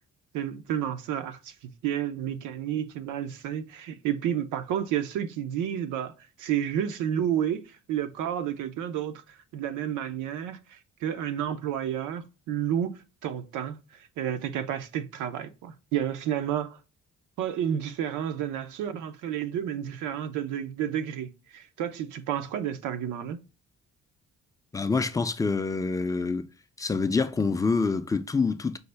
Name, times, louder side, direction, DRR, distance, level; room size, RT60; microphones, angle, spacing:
voice 1, 0.3-6.1 6.4-16.8 17.4-23.4, right 10 dB, 90° right, 0.6 m, -31 dB
voice 2, 24.7-26.5 26.8-28.8, left 4 dB, 10° left, 0.3 m, -26 dB
5.5 x 2.1 x 3.3 m
cardioid pair, 90°, 30 cm